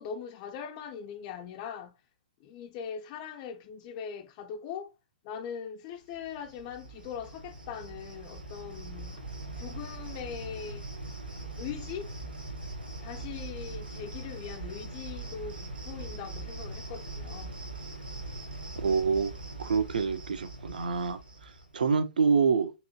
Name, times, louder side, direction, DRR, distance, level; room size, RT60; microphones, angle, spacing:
voice 1, 0.0-2.0 2.4-4.9 5.2-9.2 9.6-10.9 11.6-12.1 13.0-17.6, left 7 dB, 35° left, 0.4 m, -41 dB
Cricket, 6.1-21.8, right 2 dB, 85° right, 0.8 m, -41 dB
voice 2, 18.7-19.3 19.6-22.7, right 5 dB, 70° right, 0.4 m, -27 dB
2.9 x 2.7 x 2.6 m
figure-of-eight pair, 115°, 5 cm